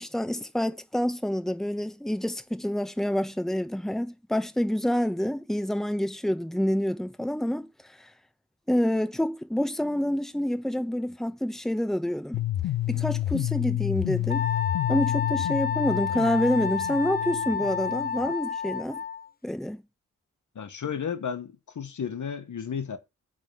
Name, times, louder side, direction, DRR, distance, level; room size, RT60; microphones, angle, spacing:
voice 1, 0.0-7.7 8.0-8.1 8.7-12.4 12.9-14.5 14.9-19.0 19.4-19.8, left 1 dB, ahead, 1.2 m, -27 dB
sound 1, 12.3-18.3, left 14 dB, 80° left, 0.5 m, -30 dB
Wind instrument woodwind instrument, 14.3-19.3, left 6 dB, 25° left, 0.7 m, -30 dB
voice 2, 20.5-23.0, left 7 dB, 60° left, 1.3 m, -33 dB
8.9 x 3.9 x 6.9 m
cardioid pair, 50°, 34 cm